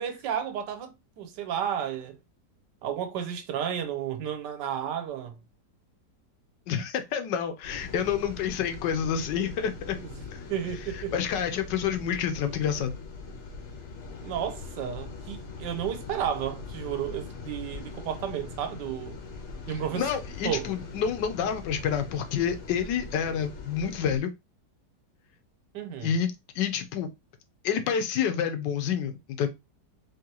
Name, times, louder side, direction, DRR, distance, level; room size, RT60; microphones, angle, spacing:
voice 1, 0.0-2.2 2.8-5.4 10.0-10.1 10.5-11.1 14.2-19.2 19.7-20.1 20.4-20.7 25.7-26.1, right 9 dB, 80° right, 1.4 m, -32 dB
voice 2, 6.7-10.0 10.3-10.4 10.9-13.0 19.7-24.3 26.0-27.1 27.6-29.5, left 8 dB, 80° left, 1.3 m, -28 dB
sound 1, 7.6-24.2, left 4 dB, 50° left, 1.0 m, -41 dB
3.8 x 3.3 x 2.8 m
omnidirectional pair, 1.9 m